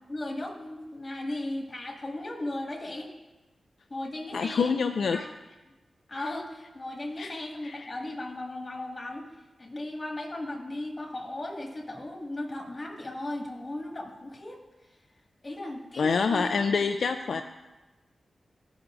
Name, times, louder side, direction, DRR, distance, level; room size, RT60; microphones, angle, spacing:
voice 1, 0.1-3.1 3.9-4.7 5.1-5.3 6.1-9.3 9.6-14.6 15.4-16.5 17.3-17.4, left 1 dB, 35° left, 0 dB, 2.0 m, -36 dB
voice 2, 4.3-5.2 7.2-7.3 7.6-7.9 16.0-17.4, left 5 dB, 75° left, 7 dB, 0.4 m, -26 dB
15.5 x 5.9 x 2.6 m, 1.1 s
cardioid pair, 60°, 0 cm